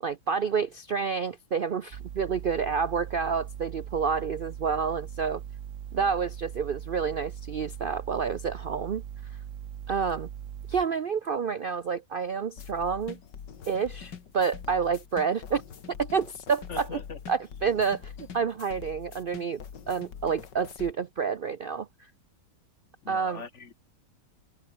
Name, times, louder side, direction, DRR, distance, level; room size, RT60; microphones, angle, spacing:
voice 1, 0.0-5.4 5.9-9.0 9.9-10.3 10.7-13.2 13.7-15.6 16.0-16.9 17.3-19.6 19.9-22.1 23.1-23.4, right 6 dB, 80° right, 0.4 m, -29 dB
sound 1, 1.9-10.8, right 10 dB, 55° right, 1.0 m, -40 dB
sound 2, 12.6-20.9, left 7 dB, 80° left, 2.4 m, -44 dB
voice 2, 16.7-17.2 23.0-23.7, left 5 dB, 45° left, 1.8 m, -41 dB
omnidirectional pair, 1.9 m